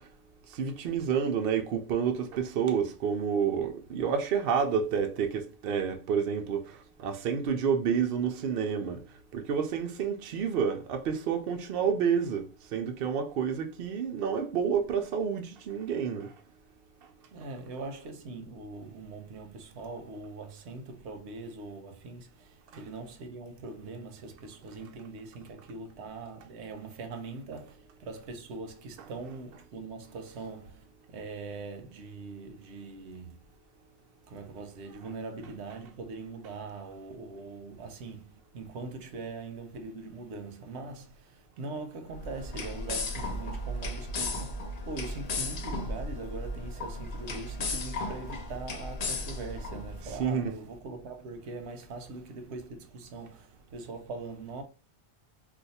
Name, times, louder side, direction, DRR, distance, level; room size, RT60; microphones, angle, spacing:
voice 1, 0.5-9.0 9.3-16.3 29.0-29.1 50.0-50.6, right 7 dB, 65° right, 0.7 m, -29 dB
voice 2, 17.3-33.4 34.3-54.6, right 3 dB, 90° right, 0.9 m, -42 dB
sound 1, 42.1-50.2, left 2 dB, 50° left, 0.5 m, -35 dB
2.5 x 2.3 x 4.0 m
omnidirectional pair, 1.1 m